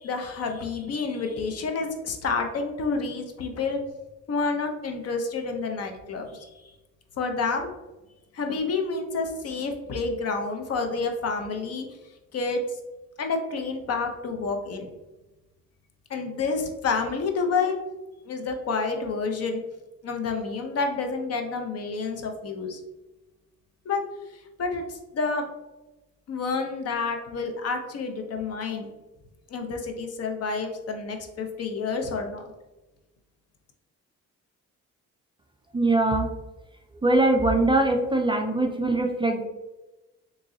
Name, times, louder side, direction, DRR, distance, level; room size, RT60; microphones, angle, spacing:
voice 1, 0.0-3.8 4.3-6.5 7.2-7.7 8.3-11.8 12.3-12.6 13.2-14.9 16.1-17.8 18.3-19.6 20.0-22.8 23.9-24.0 24.6-25.4 26.3-28.9 29.5-32.4, left 4 dB, 55° left, 4 dB, 0.7 m, -29 dB
voice 2, 35.7-36.3 37.0-39.5, right 2 dB, 15° right, 3 dB, 0.3 m, -22 dB
3.7 x 3.0 x 2.7 m, 1.1 s
cardioid pair, 90°, 30 cm